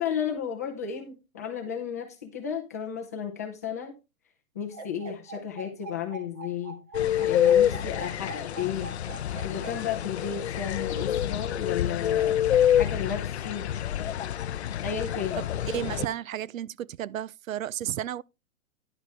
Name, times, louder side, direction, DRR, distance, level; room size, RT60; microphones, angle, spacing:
voice 1, 0.0-3.9 4.5-6.8 7.2-9.0 9.4-12.4 12.7-13.7 14.8-15.4, left 8 dB, 10° left, 0.6 m, -33 dB
sound 1, 4.7-9.7, right 3 dB, 25° right, 1.9 m, -42 dB
sound 2, 6.9-16.1, left 10 dB, 55° left, 0.5 m, -27 dB
voice 2, 15.4-18.2, right 11 dB, 70° right, 0.5 m, -33 dB
10.5 x 7.6 x 3.3 m
hypercardioid pair, 180°, 41 cm